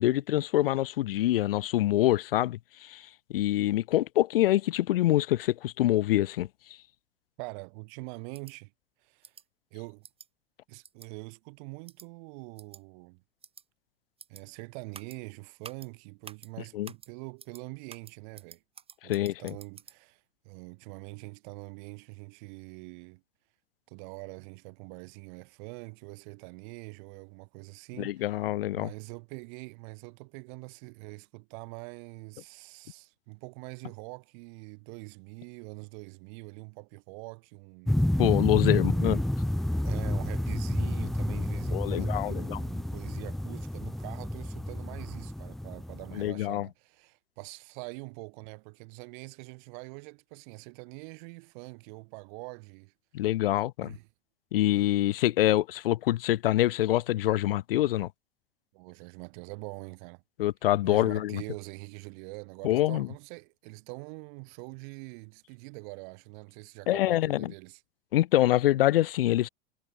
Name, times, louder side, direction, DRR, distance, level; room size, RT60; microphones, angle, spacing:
voice 1, 0.0-6.5 16.7-16.9 19.0-19.6 28.0-28.9 38.2-39.2 41.7-42.6 46.1-46.7 53.1-53.9 54.5-58.1 60.4-61.4 62.6-63.1 66.9-67.5 68.1-69.5, left 14 dB, 70° left, 0.6 m, -25 dB
voice 2, 7.4-8.7 9.0-9.3 9.7-10.1 10.7-13.2 14.3-18.6 19.0-23.2 23.9-28.3 28.7-38.2 38.7-39.2 39.8-52.9 53.8-54.1 58.7-60.2 60.8-67.8, right 34 dB, 50° right, 1.9 m, -44 dB
sound 1, 8.3-8.5 9.2-9.4 10.0-10.3 10.8-11.1 11.9-12.1 12.6-12.8 13.4-13.6 14.2-14.4 14.9-15.2 15.6-15.9 16.2-16.5 16.8-17.1 17.4-17.6 17.9-20.0, right 7 dB, 20° right, 1.3 m, -49 dB
sound 2, 37.9-46.3, left 1 dB, ahead, 0.3 m, -29 dB
hypercardioid pair, 90°, 30 cm